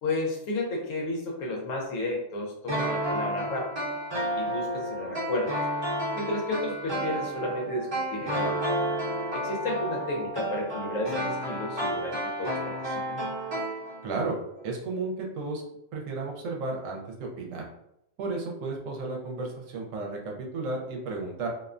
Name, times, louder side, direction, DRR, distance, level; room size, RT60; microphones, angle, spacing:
voice 1, 0.0-3.8 4.4-5.5 6.2-8.6 9.3-13.2, left 2 dB, 75° left, -1 dB, 1.0 m, -32 dB
sound 1, 2.7-14.3 14.6-14.7, right 1 dB, 25° right, 0.8 m, -31 dB
voice 2, 14.0-14.4 14.6-15.6 15.9-17.6 18.2-21.5, right 3 dB, 75° right, 0 dB, 1.0 m, -33 dB
2.6 x 2.1 x 2.4 m, 0.81 s
omnidirectional pair, 1.4 m